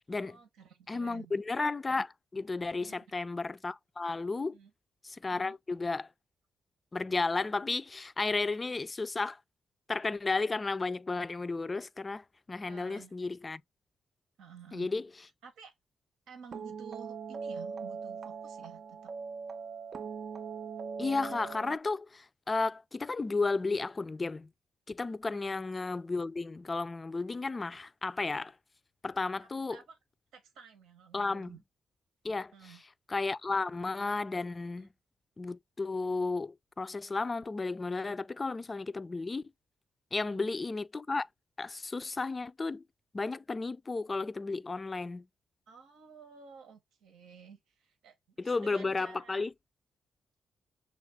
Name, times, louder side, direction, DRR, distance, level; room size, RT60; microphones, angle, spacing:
voice 1, 0.1-1.3 2.8-3.0 4.5-4.7 5.3-5.6 12.6-13.1 14.4-14.9 15.4-15.7 16.3-19.1 25.3-25.6 29.4-30.0 30.3-31.6 32.5-32.8 34.8-34.9 40.2-40.5 45.7-49.4, right 6 dB, 85° right, 1.0 m, -53 dB
voice 2, 0.9-4.6 5.0-6.1 6.9-9.4 9.9-13.6 14.7-15.0 21.0-24.5 24.9-28.5 29.0-29.8 31.1-31.6 32.2-32.5 33.1-34.9 35.4-39.4 40.1-41.3 41.6-42.8 43.1-45.3 48.4-49.5, left 3 dB, 35° left, 0.3 m, -33 dB
sound 1, 16.5-21.8, right 5 dB, 60° right, 0.5 m, -40 dB
6.4 x 2.4 x 3.4 m
supercardioid pair, 55°, 0 cm